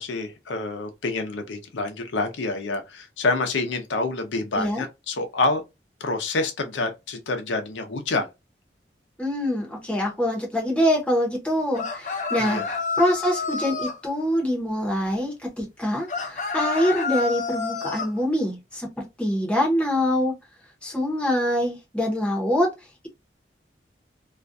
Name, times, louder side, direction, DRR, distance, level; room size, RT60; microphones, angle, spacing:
voice 1, 0.0-5.6 6.0-8.3 12.4-12.7, left 3 dB, 85° left, 0.6 m, -27 dB
voice 2, 9.2-18.9 19.2-20.3 20.8-22.7, equal, 5° left, 0.7 m, -24 dB
sound 1, 11.7-14.0 16.1-18.1, left 4 dB, 40° left, 0.5 m, -29 dB
2.4 x 2.2 x 2.5 m
head